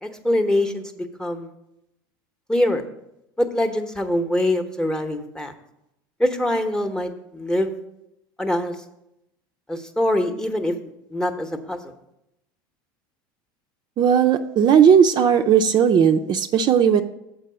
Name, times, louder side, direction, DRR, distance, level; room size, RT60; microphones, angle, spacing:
voice 1, 0.0-1.5 2.5-2.8 3.4-5.5 6.2-7.7 8.4-8.7 9.7-10.7 11.1-11.8, left 1 dB, 5° left, 7 dB, 0.9 m, -23 dB
voice 2, 14.0-17.0, right 8 dB, 40° right, 5 dB, 0.5 m, -16 dB
7.4 x 4.6 x 6.7 m, 0.86 s
hypercardioid pair, 90°, 11 cm